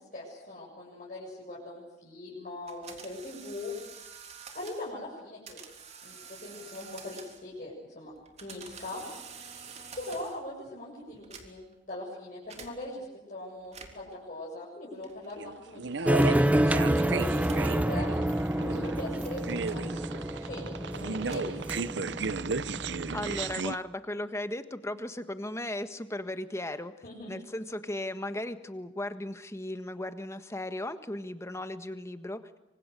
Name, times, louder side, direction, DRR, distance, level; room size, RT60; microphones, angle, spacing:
voice 1, 0.0-3.7 4.5-5.6 6.0-9.0 9.9-18.1 18.5-21.8 27.0-27.4, left 1 dB, 45° left, -5 dB, 7.8 m, -41 dB
sound 1, 2.7-4.9 5.5-7.6 8.1-10.5 11.1-11.8 12.5-12.7 13.6-14.1 15.0-15.4 16.2-16.6 17.4-17.7 18.5-20.3 21.0-22.1, right 6 dB, 35° right, 3.4 m, -48 dB
sound 2, 15.4-23.8, right 4 dB, 65° right, 0.8 m, -35 dB
sound 3, 16.1-23.5, right 1 dB, 10° right, 1.0 m, -28 dB
voice 2, 23.1-26.9 27.3-32.4, left 1 dB, 15° left, 9 dB, 1.5 m, -36 dB
27.0 x 25.5 x 6.7 m, 1.0 s
head